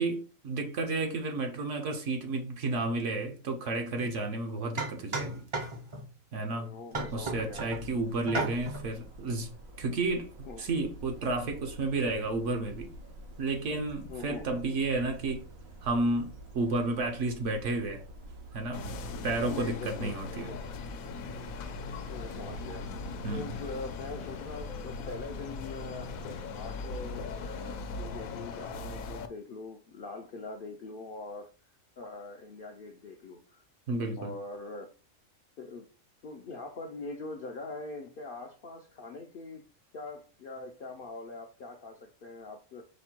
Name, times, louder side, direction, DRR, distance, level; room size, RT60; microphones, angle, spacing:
voice 1, 0.0-5.5 6.3-6.8 7.1-10.3 10.6-12.9 13.4-15.5 15.8-18.0 18.5-18.8 19.2-20.5 23.2-23.5 33.9-34.3, right 2 dB, 65° right, 1.0 m, -32 dB
sound 1, 4.0-4.1 4.8-6.1 6.9-7.8 8.3-8.9, right 2 dB, 35° right, 0.5 m, -34 dB
voice 2, 6.5-7.8 10.4-10.7 14.1-14.4 19.5-20.6 22.0-22.9 23.3-26.2 26.5-33.6 34.2-34.9 35.6-35.9 36.2-39.7 39.9-42.9, left 3 dB, 60° left, 0.6 m, -43 dB
sound 2, 6.9-26.6, right 1 dB, 85° right, 1.4 m, -48 dB
sound 3, 18.7-29.3, left 4 dB, 90° left, 1.1 m, -39 dB
5.1 x 2.2 x 4.3 m
omnidirectional pair, 1.4 m